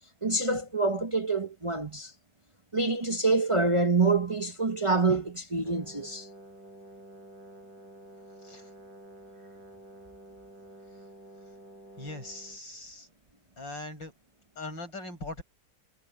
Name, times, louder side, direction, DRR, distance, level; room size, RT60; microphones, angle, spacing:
voice 1, 0.2-2.1 2.7-6.3, right 3 dB, 30° right, 0.5 m, -26 dB
Brass instrument, 5.6-12.6, right 1 dB, 70° right, 7.1 m, -50 dB
voice 2, 12.0-13.1 13.6-14.1 14.6-15.4, left 2 dB, 70° left, 8.6 m, -40 dB
omnidirectional pair, 2.1 m